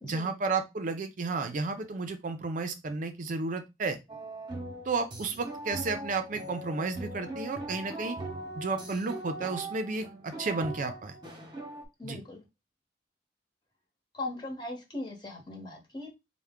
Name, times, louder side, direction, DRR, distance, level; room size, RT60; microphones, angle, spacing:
voice 1, 0.0-4.0 4.9-8.2 8.6-11.1 12.0-12.2, right 4 dB, 45° right, 8 dB, 0.4 m, -32 dB
sound 1, 4.1-11.8, right 1 dB, 25° right, 0.8 m, -40 dB
voice 2, 12.0-12.4 14.1-16.1, left 2 dB, 25° left, 1 dB, 1.0 m, -39 dB
4.3 x 2.1 x 3.5 m, 0.23 s
head